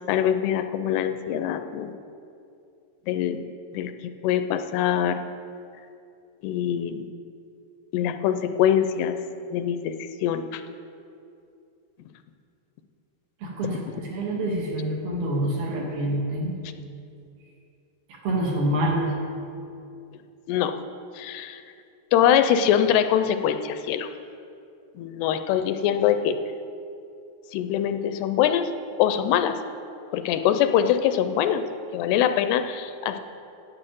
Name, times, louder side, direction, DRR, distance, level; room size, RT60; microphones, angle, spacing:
voice 1, 0.1-1.9 3.1-3.4 3.7-3.9 4.2-5.3 6.4-7.1 7.9-9.2 9.5-10.6 13.6-13.7 20.5-20.8 21.1-21.6 22.1-24.1 25.0-26.4 27.5-28.7 29.0-29.6 30.1-31.6 31.9-33.2, left 9 dB, 80° left, 9 dB, 2.6 m, -23 dB
voice 2, 13.4-16.5 18.1-19.1, right 1 dB, 65° right, -2 dB, 3.7 m, -27 dB
9.9 x 9.5 x 7.7 m, 2.5 s
omnidirectional pair, 4.8 m